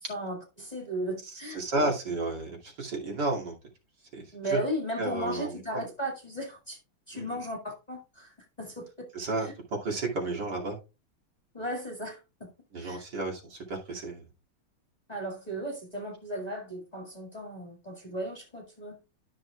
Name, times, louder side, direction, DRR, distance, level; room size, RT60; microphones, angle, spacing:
voice 1, 0.0-1.6 4.3-6.8 7.1-9.1 9.4-9.5 11.5-12.5 12.8-13.0 15.1-19.0, right 1 dB, 20° left, 1.9 m, -36 dB
voice 2, 1.2-3.5 4.1-4.6 5.0-5.8 7.1-7.4 9.1-9.5 9.8-10.8 12.7-14.2, right 2 dB, 55° right, 3.0 m, -32 dB
13.0 x 6.4 x 2.3 m
omnidirectional pair, 2.2 m